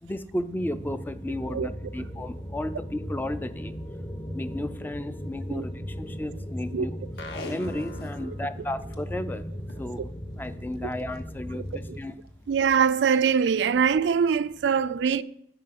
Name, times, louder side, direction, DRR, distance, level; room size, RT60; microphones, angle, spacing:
voice 1, 0.0-3.7 4.3-6.9 7.4-9.5 9.8-10.1 10.4-12.2, left 1 dB, 10° left, 0.3 m, -33 dB
sound 1, 0.6-12.0, equal, 25° left, 0.9 m, -37 dB
sound 2, 7.2-9.1, left 3 dB, 85° left, 1.0 m, -44 dB
Packing tape duct tape, 7.2-8.3 8.7-9.0 9.6-9.9 10.9-11.2 11.7-11.8, left 1 dB, 60° left, 0.9 m, -40 dB
voice 2, 12.5-15.2, right 6 dB, 85° right, 0.4 m, -23 dB
9.6 x 4.8 x 5.9 m
head